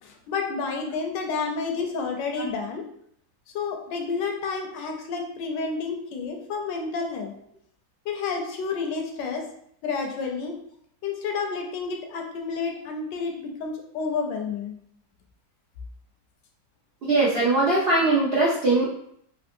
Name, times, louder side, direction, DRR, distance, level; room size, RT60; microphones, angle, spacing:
voice 1, 0.0-2.9 3.5-7.3 8.0-9.4 9.8-10.5 11.0-14.7, left 4 dB, 80° left, 3 dB, 1.3 m, -30 dB
voice 2, 17.0-18.9, right 2 dB, 85° right, -6 dB, 0.5 m, -21 dB
3.5 x 2.6 x 2.6 m, 0.69 s
omnidirectional pair, 1.9 m